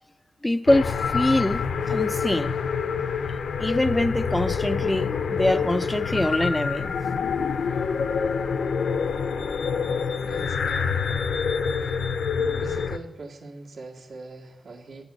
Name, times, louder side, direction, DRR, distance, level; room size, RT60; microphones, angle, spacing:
voice 1, 0.4-2.6 3.6-6.9 12.4-12.6, left 1 dB, 10° left, 0.3 m, -24 dB
sound 1, 0.7-13.0, left 6 dB, 75° left, 0.7 m, -26 dB
voice 2, 10.2-11.2 12.6-15.0, right 3 dB, 65° right, 1.8 m, -41 dB
9.4 x 8.3 x 8.6 m
wide cardioid pair, 150°, 0 cm